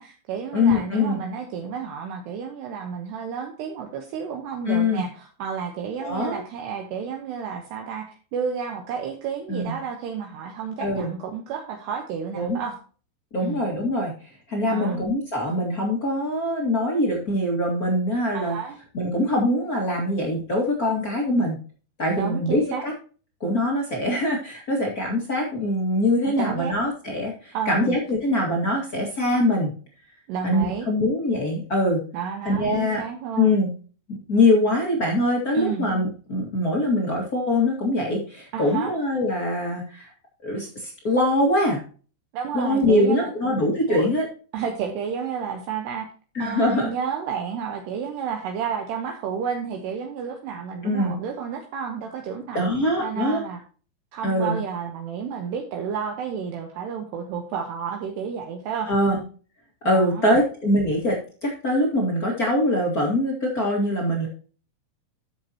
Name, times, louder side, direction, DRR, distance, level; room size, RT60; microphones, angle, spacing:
voice 1, 0.0-12.8 13.4-13.7 14.6-15.1 18.3-18.8 22.2-22.8 26.3-26.8 27.5-27.9 30.3-30.9 32.1-33.5 35.5-35.9 38.5-38.9 42.3-43.3 43.9-44.1 44.5-46.1 46.4-52.7 53.0-53.6 54.1-58.9 59.8-60.4, right 7 dB, 70° right, 3 dB, 2.9 m, -31 dB
voice 2, 0.5-1.2 4.6-5.0 6.0-6.4 9.5-9.7 10.8-11.1 12.3-12.6 13.3-18.6 18.9-21.6 22.0-22.9 23.4-29.7 30.4-32.0 32.4-33.0 33.4-33.7 34.1-40.1 40.4-41.8 42.5-44.2 46.3-46.9 50.8-51.1 52.5-53.4 54.2-54.6 58.9-59.2 59.8-61.1 61.4-64.3, left 1 dB, 70° left, -1 dB, 0.8 m, -23 dB
13.0 x 6.7 x 2.9 m, 0.39 s
omnidirectional pair, 5.4 m